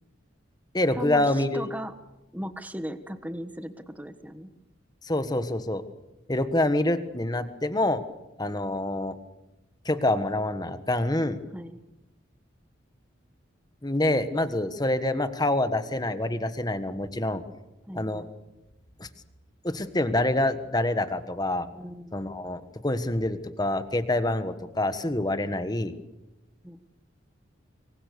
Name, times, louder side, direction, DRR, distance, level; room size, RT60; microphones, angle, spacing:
voice 1, 0.7-1.6 5.0-5.8 6.3-8.0 8.4-9.1 9.8-11.4 13.8-17.4 17.9-18.2 19.0-19.1 19.6-21.7 22.1-25.9, left 1 dB, 20° left, 10 dB, 1.4 m, -26 dB
voice 2, 1.5-1.9 2.3-4.5 11.5-11.8 17.9-18.3 21.7-22.1 26.6-26.8, equal, 10° right, 9 dB, 1.3 m, -37 dB
26.0 x 23.0 x 6.9 m, 0.98 s
head